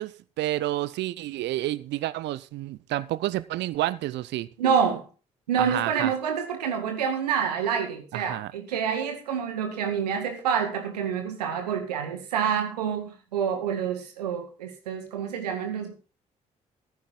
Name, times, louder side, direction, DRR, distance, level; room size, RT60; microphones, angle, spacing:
voice 1, 0.0-4.5 5.6-6.1 8.1-8.5, right 15 dB, 60° right, 0.8 m, -30 dB
voice 2, 4.6-5.1 5.5-15.9, right 7 dB, 80° right, 1.9 m, -27 dB
14.5 x 9.4 x 3.9 m
figure-of-eight pair, 45°, 20 cm